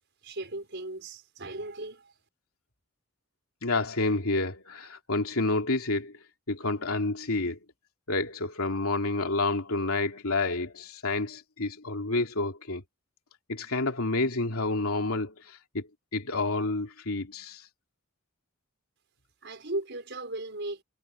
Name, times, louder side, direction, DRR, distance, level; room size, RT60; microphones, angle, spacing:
voice 1, 0.2-2.1 19.4-20.8, right 2 dB, 55° right, 5.8 m, -36 dB
voice 2, 3.6-6.1 6.5-7.6 8.1-12.8 13.5-15.9 16.1-17.7, left 2 dB, 80° left, 2.8 m, -29 dB
head